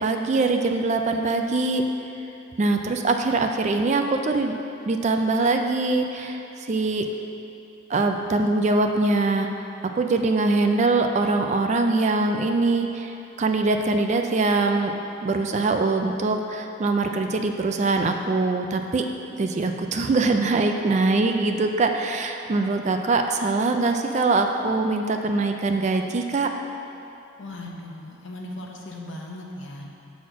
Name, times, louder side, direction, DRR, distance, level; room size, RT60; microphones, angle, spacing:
voice 1, 0.0-1.8 2.6-4.5 4.9-7.1 7.9-9.7 9.9-14.9 15.2-19.1 19.4-26.5, right 3 dB, 35° right, 5 dB, 0.3 m, -23 dB
voice 2, 27.4-29.9, left 1 dB, 60° left, 0 dB, 0.9 m, -37 dB
7.5 x 4.2 x 6.0 m, 2.8 s
head